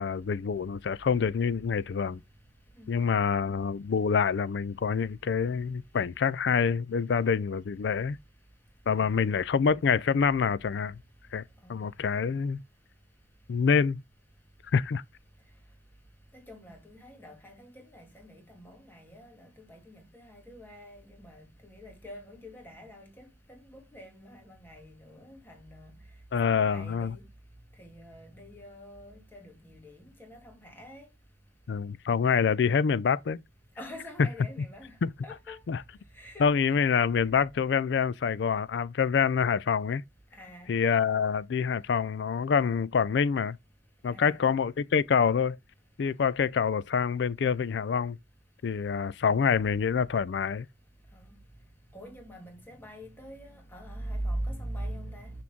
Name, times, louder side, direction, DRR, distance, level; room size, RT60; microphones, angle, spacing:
voice 1, 0.0-2.2 2.9-8.2 8.9-11.0 11.3-11.4 11.7-12.6 13.5-14.0 14.7-15.0 26.3-27.2 31.7-33.4 34.2-34.3 35.0-35.1 35.7-35.8 36.4-40.0 40.7-43.6 44.0-45.6 46.0-48.2 48.6-50.7, left 6 dB, 65° left, 0.4 m, -26 dB
voice 2, 16.3-25.9 26.4-27.2 27.8-31.1 33.8-35.0 35.2-35.6 36.1-36.8 40.3-40.7 44.0-44.4 51.1-51.2 51.9-55.3, right 1 dB, 10° left, 2.2 m, -43 dB
6.1 x 5.9 x 3.6 m
head